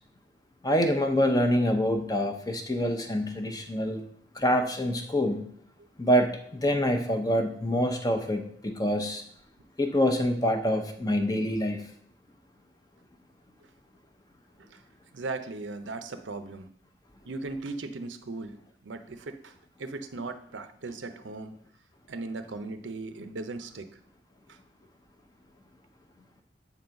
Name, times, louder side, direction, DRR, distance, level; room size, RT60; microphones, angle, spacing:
voice 1, 0.6-4.0 4.3-5.5 6.0-9.2 9.8-11.8, equal, 20° left, 6 dB, 0.7 m, -26 dB
voice 2, 15.1-16.7 17.2-19.5 19.8-21.6 22.1-24.0 24.5-24.6, right 3 dB, 80° right, 9 dB, 0.6 m, -38 dB
7.2 x 3.9 x 5.8 m, 0.65 s
head